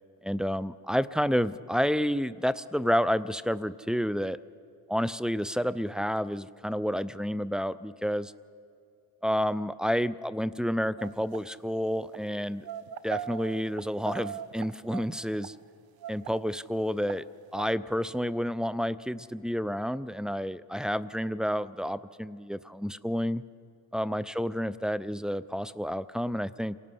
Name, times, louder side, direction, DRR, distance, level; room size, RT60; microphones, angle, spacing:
voice 1, 0.2-4.4 4.9-8.3 9.2-12.6 13.0-15.5 16.1-17.3 17.5-23.4 23.9-26.8, equal, ahead, 15 dB, 0.5 m, -30 dB
sound 1, 11.0-11.4 12.0-12.2 12.6-15.5 16.0-16.3 16.9-17.2 17.5-17.7, right 9 dB, 65° right, 0.7 m, -39 dB
28.0 x 18.0 x 5.6 m, 2.4 s
supercardioid pair, 65°, 40 cm